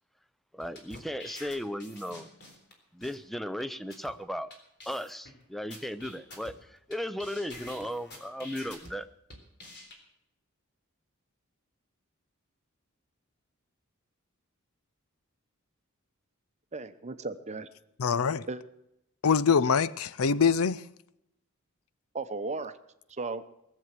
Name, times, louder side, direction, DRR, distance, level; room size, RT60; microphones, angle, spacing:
voice 1, 0.5-2.3 2.9-4.5 4.9-6.6 6.9-9.1, equal, ahead, 0.5 m, -36 dB
sound 1, 0.6-2.7 3.0-3.2 3.6-3.7 3.9-4.1 4.5-4.6 4.8-5.3 5.7-6.9 7.2-8.9 9.3-9.9, left 2 dB, 50° left, 3.7 m, -47 dB
voice 2, 16.7-17.7 18.5-18.6 22.1-22.7 23.1-23.4, right 3 dB, 30° right, 0.9 m, -35 dB
voice 3, 18.0-18.5 19.2-20.8, left 6 dB, 75° left, 0.5 m, -24 dB
19.5 x 7.7 x 7.6 m
head